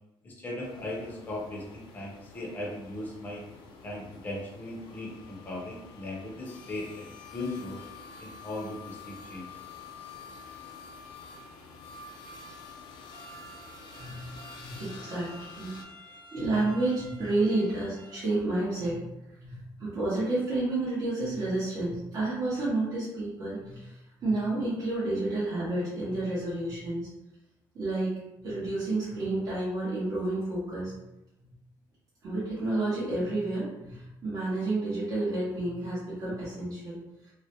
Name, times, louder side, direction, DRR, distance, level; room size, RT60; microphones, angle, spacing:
voice 1, 0.2-3.4 3.8-7.0 7.3-7.8 8.2-9.6, left 1 dB, 20° left, -3 dB, 0.6 m, -38 dB
sound 1, 0.6-15.8, left 4 dB, 70° left, 0.4 m, -48 dB
sound 2, 13.1-18.1, right 2 dB, 75° right, 0.8 m, -51 dB
voice 2, 14.0-14.3 14.6-15.7 16.3-19.1 19.4-27.1 27.7-28.1 28.4-31.0 32.2-37.3, right 2 dB, 45° right, -10 dB, 0.8 m, -30 dB
2.4 x 2.0 x 2.8 m, 0.91 s
cardioid pair, 170°, 9 cm